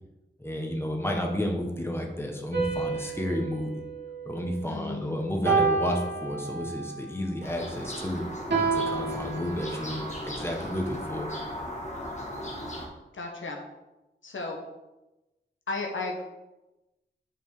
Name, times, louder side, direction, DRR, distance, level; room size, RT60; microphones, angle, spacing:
voice 1, 0.4-3.8 4.2-8.2 8.7-11.3, left 1 dB, 10° left, 1 dB, 1.4 m, -31 dB
sound 1, 2.5-4.9 5.5-6.9 8.5-10.0, right 4 dB, 60° right, 2.0 m, -29 dB
voice 2, 4.7-5.3 13.1-13.6 14.2-14.6 15.7-16.2, left 3 dB, 75° left, 1 dB, 1.1 m, -34 dB
sound 2, 7.4-12.9, equal, 35° left, 1.9 m, -37 dB
8.1 x 4.5 x 3.8 m, 1.0 s
cardioid pair, 45°, 20 cm